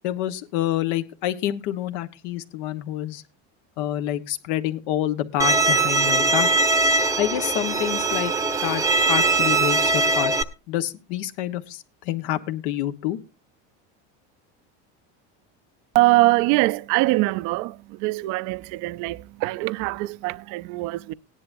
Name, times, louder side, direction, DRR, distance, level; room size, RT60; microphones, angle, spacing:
voice 1, 0.0-3.2 3.8-6.5 7.2-8.3 8.6-8.8 9.1-10.3 10.7-13.2, left 12 dB, 75° left, 1.3 m, -27 dB
Bowed string instrument, 5.4-10.4, right 3 dB, 10° right, 0.8 m, -21 dB
voice 2, 15.9-21.1, right 21 dB, 60° right, 0.6 m, -23 dB
17.5 x 10.5 x 2.6 m
supercardioid pair, 125°, 35 cm